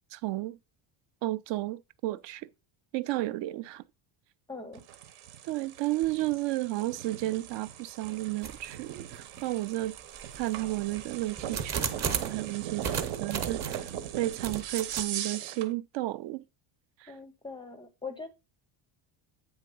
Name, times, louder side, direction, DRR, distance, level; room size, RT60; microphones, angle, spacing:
voice 1, 0.1-0.6 1.2-2.5 2.9-3.8 5.4-10.0 10.4-16.4 17.0-17.1, right 17 dB, 60° right, 0.5 m, -33 dB
voice 2, 4.5-4.8 17.1-18.3, left 4 dB, 10° left, 0.4 m, -41 dB
sound 1, 4.7-15.7, right 11 dB, 80° right, 1.2 m, -39 dB
sound 2, 8.4-8.8 9.4-9.5 10.2-12.4 12.8-13.9 14.4-15.0, right 6 dB, 35° right, 0.9 m, -35 dB
8.8 x 3.6 x 5.3 m
cardioid pair, 170°, 49 cm